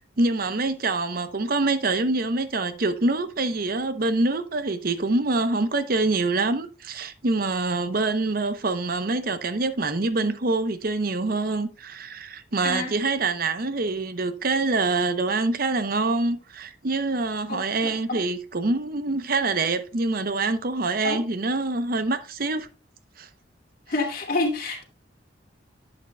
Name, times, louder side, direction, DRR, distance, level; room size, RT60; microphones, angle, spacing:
voice 1, 0.2-22.7 23.2-23.3, right 3 dB, 50° right, 0.8 m, -25 dB
voice 2, 23.9-24.8, left 2 dB, 50° left, 2.4 m, -27 dB
11.0 x 8.0 x 2.2 m
head